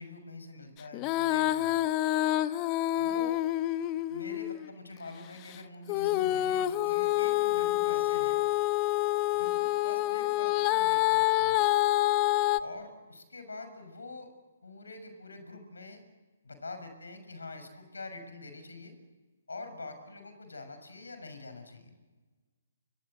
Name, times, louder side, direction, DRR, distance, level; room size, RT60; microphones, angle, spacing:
voice 1, 0.0-1.8 3.0-3.4 4.1-8.4 9.3-11.6 12.6-14.3 14.6-16.0 16.4-18.9 19.5-21.9, left 3 dB, 75° left, 9 dB, 6.6 m, -45 dB
Female singing, 0.9-4.7 5.9-12.6, left 16 dB, 25° left, 0.9 m, -27 dB
28.5 x 24.5 x 8.1 m, 1.3 s
figure-of-eight pair, 135°, 0 cm